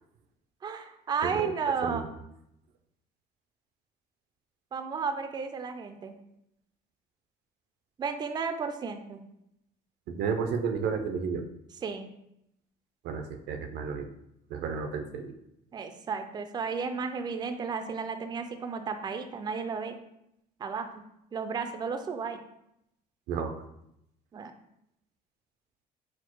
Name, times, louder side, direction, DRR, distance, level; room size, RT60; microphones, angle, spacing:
voice 1, 0.6-2.0 4.7-6.2 8.0-9.2 11.8-12.1 15.7-20.0 20.6-22.4 24.3-24.5, right 5 dB, 25° right, 8 dB, 0.4 m, -33 dB
voice 2, 1.2-1.5 1.8-2.0 10.1-11.4 13.0-14.1 14.5-15.3 23.3-23.5, right 6 dB, 80° right, 6 dB, 0.5 m, -32 dB
4.3 x 2.0 x 4.4 m, 0.79 s
cardioid pair, 110°, 17 cm